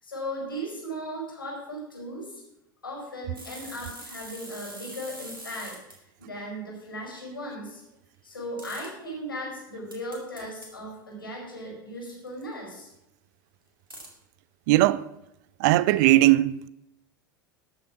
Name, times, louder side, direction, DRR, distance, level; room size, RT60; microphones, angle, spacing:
voice 1, 0.0-2.4 2.8-5.8 6.2-7.8 8.2-12.9, equal, 85° left, 5.1 m, -37 dB
sound 1, 3.3-6.0 8.6-8.9 9.9-10.7 12.3-12.4 13.9-14.1, right 1 dB, 90° right, 2.4 m, -43 dB
voice 2, 14.7-15.1 15.6-16.7, right 16 dB, 55° right, 0.5 m, -19 dB
12.5 x 7.0 x 5.8 m
figure-of-eight pair, 80°, 11 cm